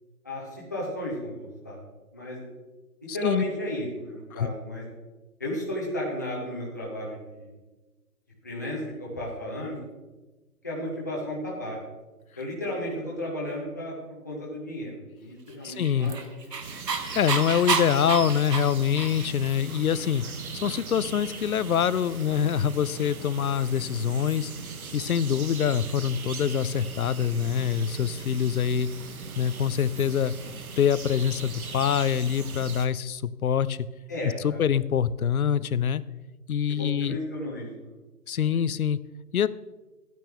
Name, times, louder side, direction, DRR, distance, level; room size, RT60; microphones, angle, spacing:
voice 1, 0.2-1.8 2.1-2.4 3.1-4.8 5.4-7.5 8.4-9.7 10.6-11.8 12.4-13.9 14.2-16.2 16.5-16.6 34.1-34.6 36.7-37.9 38.3-38.6, left 1 dB, 10° left, -5 dB, 0.8 m, -34 dB
voice 2, 3.1-3.4 4.3-4.5 15.6-16.1 16.9-20.2 20.6-24.5 24.9-28.9 29.4-30.3 30.8-33.9 34.4-36.0 36.5-37.2 38.3-39.0 39.3-39.5, left 8 dB, 65° left, 17 dB, 0.5 m, -25 dB
Dog, 15.6-19.5, right 5 dB, 80° right, 1.4 m, -30 dB
sound 1, 16.6-32.9, right 5 dB, 60° right, 1.1 m, -40 dB
13.5 x 9.2 x 3.4 m, 1.2 s
hypercardioid pair, 165°, 48 cm